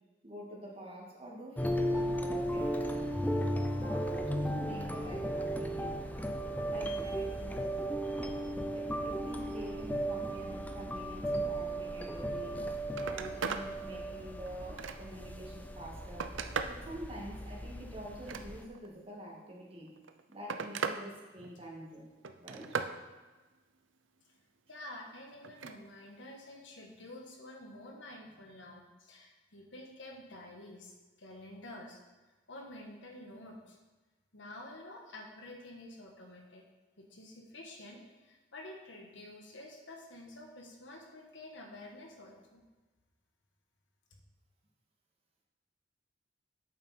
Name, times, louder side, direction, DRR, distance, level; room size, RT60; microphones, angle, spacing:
voice 1, 0.2-3.2 3.8-6.0 6.6-7.8 8.7-12.7 13.0-16.3 16.7-19.9 20.3-22.1 22.4-22.8, equal, 30° right, -3 dB, 2.1 m, -46 dB
sound 1, 1.6-18.6, right 1 dB, 10° left, 0.5 m, -36 dB
Telephone, 12.5-12.6 12.9-13.7 14.2-15.3 15.8-16.8 18.1-18.9 19.9-21.0 21.4-21.8 22.2-23.0 25.4-25.8 27.2-27.3, right 5 dB, 80° right, 0.6 m, -38 dB
voice 2, 24.7-32.0 32.5-33.8 34.3-36.6 37.0-42.6, left 1 dB, 75° left, 1 dB, 1.5 m, -49 dB
8.8 x 7.4 x 4.4 m, 1.2 s
head